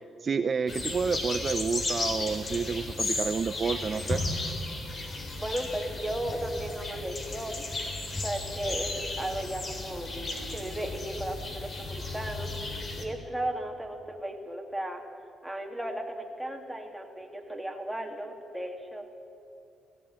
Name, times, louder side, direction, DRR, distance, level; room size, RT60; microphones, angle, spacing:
voice 1, 0.2-4.2, right 5 dB, 45° right, 9 dB, 0.7 m, -29 dB
sound 1, 0.7-13.0, left 2 dB, 40° left, 3.4 m, -34 dB
voice 2, 5.4-7.7 8.2-10.1 10.5-12.5 13.0-15.0 15.4-19.0, right 1 dB, 5° right, 2 dB, 2.8 m, -35 dB
17.5 x 16.0 x 9.5 m, 2.6 s
cardioid pair, 90°, 0 cm